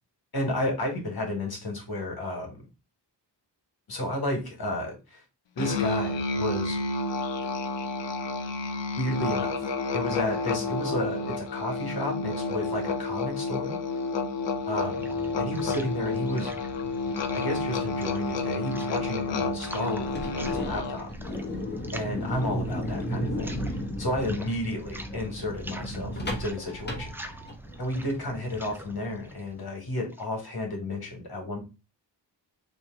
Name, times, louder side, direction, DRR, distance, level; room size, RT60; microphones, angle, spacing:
voice 1, 0.3-2.6 3.9-5.2 5.5-6.8 9.0-13.7 14.7-15.1 15.4-16.5 17.3-21.1 21.9-27.2 27.8-31.7, left 1 dB, 55° left, 2 dB, 1.6 m, -32 dB
Musical instrument, 5.6-21.1, left 3 dB, 75° left, 0.7 m, -30 dB
sound 1, 14.4-30.4, right 1 dB, 5° right, 0.3 m, -44 dB
sound 2, 20.0-27.8, equal, 25° left, 1.1 m, -34 dB
3.2 x 2.9 x 4.4 m, 0.28 s
wide cardioid pair, 135°, 44 cm